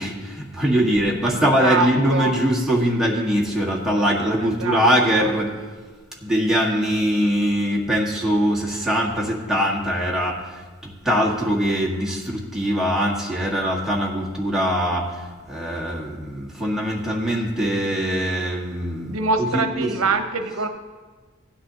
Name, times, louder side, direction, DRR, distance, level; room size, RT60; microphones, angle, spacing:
voice 1, 0.0-5.6 6.2-19.9, equal, ahead, -4 dB, 1.5 m, -22 dB
voice 2, 1.4-2.3 4.6-4.9 5.2-5.3 19.1-20.7, right 3 dB, 80° right, 7 dB, 0.8 m, -24 dB
16.0 x 9.7 x 2.8 m, 1.4 s
head